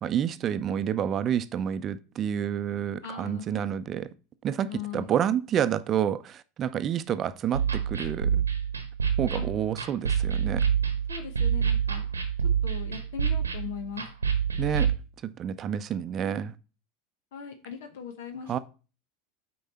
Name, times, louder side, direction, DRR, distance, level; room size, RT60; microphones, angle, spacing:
voice 1, 0.0-4.1 4.4-4.7 4.9-8.4 9.2-10.6 14.6-14.9 15.4-16.5 18.5-18.6, right 9 dB, 35° right, 0.6 m, -29 dB
voice 2, 3.0-3.7 4.7-5.1 9.4-9.5 11.1-12.1 12.4-14.1 17.3-18.6, left 7 dB, 65° left, 0.9 m, -39 dB
sound 1, 7.5-14.9, right 7 dB, 90° right, 1.1 m, -27 dB
8.2 x 4.7 x 4.2 m
figure-of-eight pair, 80°, 0 cm